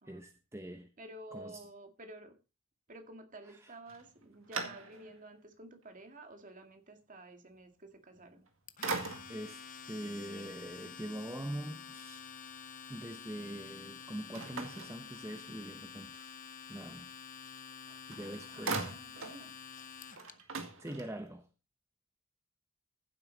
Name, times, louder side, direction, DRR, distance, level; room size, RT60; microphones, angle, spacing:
voice 1, 0.1-0.9 1.3-1.6 3.6-3.7 9.3-9.6 9.9-12.2 12.9-16.3 16.7-17.1 18.1-18.9 20.8-21.5, right 1 dB, 15° right, 0.9 m, -43 dB
voice 2, 1.0-2.4 2.9-8.5 17.8-18.0 18.5-19.5, right 1 dB, 40° right, 2.0 m, -51 dB
sound 1, 3.9-5.3 5.8-5.9 8.2-8.5 8.8-9.6 14.3-15.6 17.7-17.8 18.1-19.4 19.8-19.9 20.1-21.4, right 4 dB, 65° right, 2.1 m, -40 dB
Domestic sounds home sounds, 8.7-20.3, left 7 dB, 40° left, 0.9 m, -49 dB
15.0 x 7.8 x 4.0 m
head